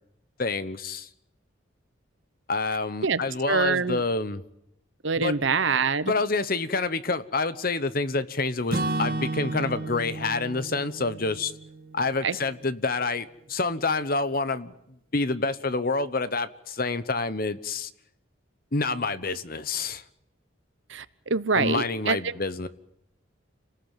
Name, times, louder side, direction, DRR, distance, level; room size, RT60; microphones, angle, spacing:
voice 1, 0.4-1.1 2.5-4.4 5.2-5.3 6.1-11.5 11.9-14.7 15.1-17.9 18.7-20.0 21.5-22.7, left 3 dB, 45° left, 1.1 m, -28 dB
voice 2, 3.5-4.0 5.0-6.1 12.2-12.4 20.9-22.2, right 5 dB, 70° right, 1.0 m, -25 dB
Acoustic guitar / Strum, 8.7-12.7, right 2 dB, 45° right, 1.9 m, -33 dB
28.5 x 19.0 x 9.2 m
head